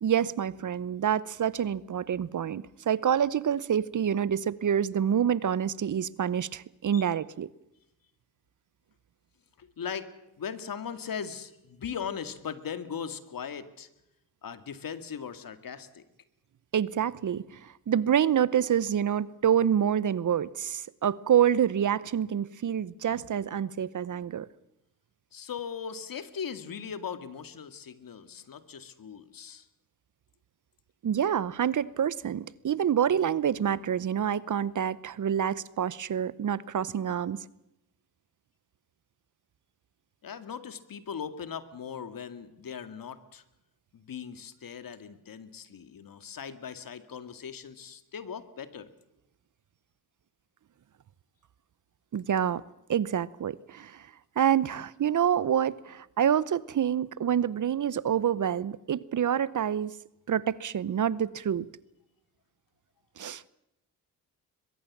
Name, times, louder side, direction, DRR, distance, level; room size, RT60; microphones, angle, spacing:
voice 1, 0.0-7.5 16.7-24.5 31.0-37.4 52.1-52.6 52.9-54.1 54.4-59.9 60.3-61.7 63.2-63.4, right 9 dB, 50° right, 0.8 m, -27 dB
voice 2, 9.6-10.1 10.4-13.9 14.4-16.0 25.3-29.7 40.2-43.4 43.9-48.9, left 7 dB, 60° left, 2.1 m, -39 dB
22.0 x 22.0 x 7.4 m
cardioid pair, 65°, 39 cm